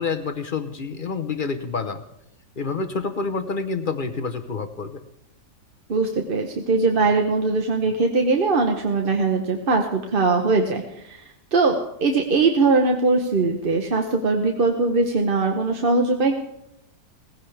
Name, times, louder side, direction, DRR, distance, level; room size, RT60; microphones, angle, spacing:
voice 1, 0.0-2.0 2.6-5.0, left 4 dB, 50° left, 7 dB, 0.6 m, -28 dB
voice 2, 5.9-11.2 11.5-11.8 12.0-16.3, right 3 dB, 40° right, 3 dB, 0.9 m, -21 dB
18.0 x 16.0 x 3.4 m, 0.81 s
omnidirectional pair, 1.8 m